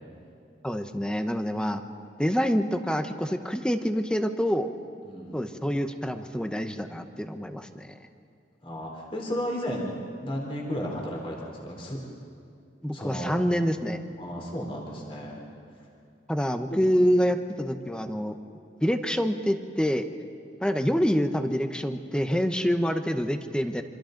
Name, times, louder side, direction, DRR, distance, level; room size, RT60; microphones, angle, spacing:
voice 1, 0.6-1.8 2.2-4.7 5.3-7.9 12.8-14.0 16.3-18.4 18.8-20.1 20.6-23.8, equal, 5° left, 7 dB, 0.9 m, -26 dB
voice 2, 5.1-5.4 8.6-12.0 12.9-13.5 14.2-15.4 16.7-16.9 20.6-20.8, equal, 30° left, -2 dB, 3.6 m, -34 dB
27.0 x 26.0 x 3.9 m, 2.4 s
head